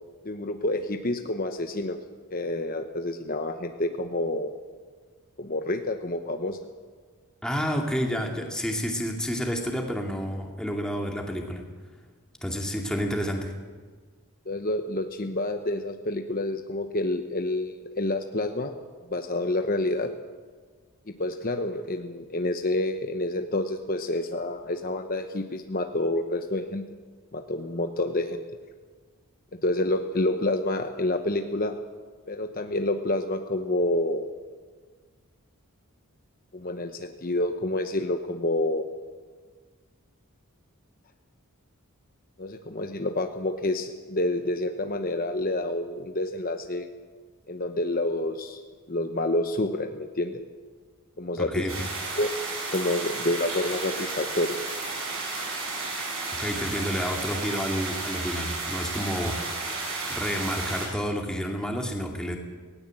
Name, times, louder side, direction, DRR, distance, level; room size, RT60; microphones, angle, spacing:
voice 1, 0.2-2.0 2.3-4.5 5.4-6.6 14.5-18.7 19.1-20.1 21.1-26.8 27.3-28.4 29.5-31.7 32.3-34.3 36.5-38.9 42.4-46.9 47.5-48.6 48.9-50.4 51.2-51.7 52.2-52.3 52.7-54.6, left 2 dB, 40° left, 6 dB, 1.0 m, -28 dB
voice 2, 7.4-11.6 12.4-13.5 51.4-51.9 56.4-59.4 60.1-62.4, equal, 5° left, 1 dB, 2.4 m, -30 dB
sound 1, 51.7-60.9, right 3 dB, 65° right, 7.5 m, -33 dB
19.0 x 18.0 x 7.7 m, 1.5 s
head